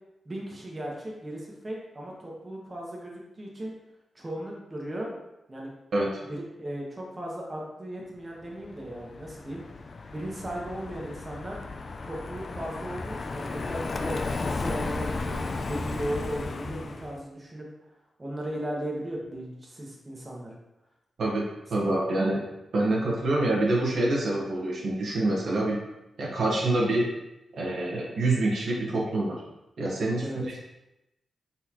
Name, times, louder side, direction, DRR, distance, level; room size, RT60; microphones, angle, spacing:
voice 1, 0.2-3.7 4.1-5.1 5.5-5.7 6.2-9.6 10.1-11.6 12.0-17.7 18.2-20.5 21.8-21.9 30.2-30.4, right 1 dB, 25° right, -3 dB, 1.1 m, -36 dB
Car passing by, 8.6-17.2, left 3 dB, 50° left, 0.3 m, -34 dB
voice 2, 21.7-22.4 22.7-25.8 26.2-27.1 27.5-29.4 29.8-30.6, right 2 dB, 75° right, -4 dB, 1.1 m, -26 dB
4.0 x 4.0 x 2.9 m, 0.93 s
cardioid pair, 80°, 0 cm